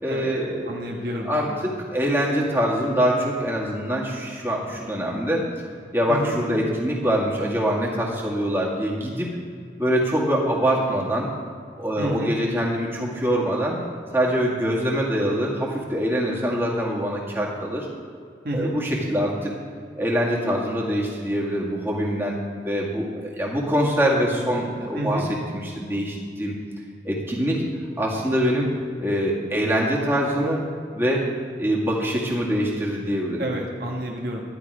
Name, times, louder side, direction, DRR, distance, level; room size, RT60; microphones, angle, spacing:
voice 1, 0.0-0.7 1.2-5.5 5.9-9.3 9.8-11.3 11.8-13.8 14.1-17.9 18.5-19.5 20.0-22.4 22.6-25.3 25.5-26.5 27.0-27.6 28.0-28.7 29.0-30.6 30.9-31.3 31.6-33.4, equal, 15° right, -4 dB, 2.1 m, -24 dB
voice 2, 0.7-1.7 6.1-6.4 12.0-12.4 18.4-18.7 19.1-19.2 24.9-25.3 33.4-34.4, equal, 55° right, 0 dB, 1.3 m, -29 dB
12.0 x 11.0 x 4.9 m, 2.3 s
head